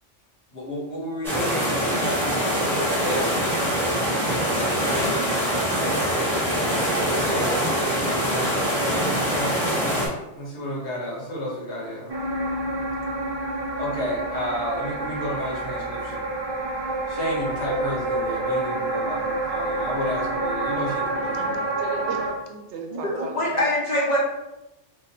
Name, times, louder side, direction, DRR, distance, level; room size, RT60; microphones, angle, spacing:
voice 1, 0.5-3.4 4.8-5.1 7.0-7.6 8.0-10.1 10.3-12.1 13.8-16.3 17.1-21.6, equal, 70° left, -4 dB, 1.4 m, -32 dB
sound 1, 1.2-10.1, equal, ahead, 1.2 m, -23 dB
sound 2, 12.1-22.3, right 2 dB, 35° right, 0.4 m, -28 dB
voice 2, 21.2-23.6, right 4 dB, 70° right, 2 dB, 1.0 m, -37 dB
voice 3, 22.9-24.2, left 1 dB, 40° left, -6 dB, 0.9 m, -24 dB
3.0 x 2.5 x 4.2 m, 0.95 s
omnidirectional pair, 1.2 m